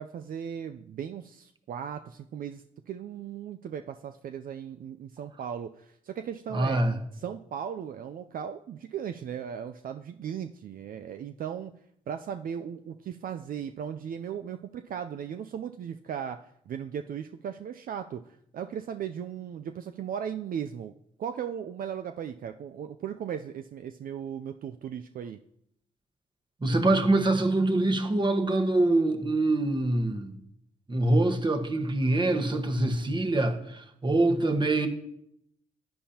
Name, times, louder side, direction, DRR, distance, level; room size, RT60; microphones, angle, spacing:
voice 1, 0.0-6.8 7.1-11.7 12.1-20.9 21.2-25.4, right 8 dB, 65° right, 0.4 m, -37 dB
voice 2, 6.5-7.0 26.6-30.3 30.9-34.9, right 2 dB, 30° right, 1.3 m, -24 dB
11.0 x 8.6 x 2.9 m
supercardioid pair, 50°, 16 cm